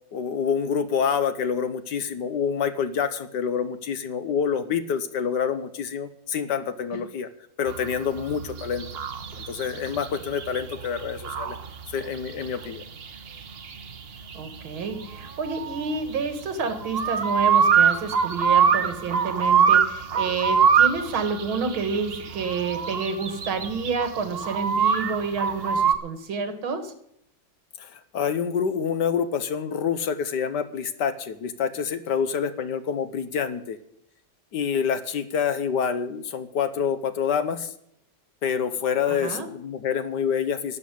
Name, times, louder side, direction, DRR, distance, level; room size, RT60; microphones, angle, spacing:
voice 1, 0.1-7.3 7.6-8.9 9.5-11.6 11.9-12.8 27.8-33.8 34.5-37.7 38.4-40.8, left 7 dB, 65° left, 12 dB, 1.4 m, -27 dB
sound 1, 7.7-25.9, right 7 dB, 45° right, 0.8 m, -25 dB
voice 2, 14.3-26.9 39.1-39.5, right 4 dB, 80° right, 9 dB, 2.6 m, -29 dB
12.5 x 7.7 x 9.8 m, 0.73 s
omnidirectional pair, 2.2 m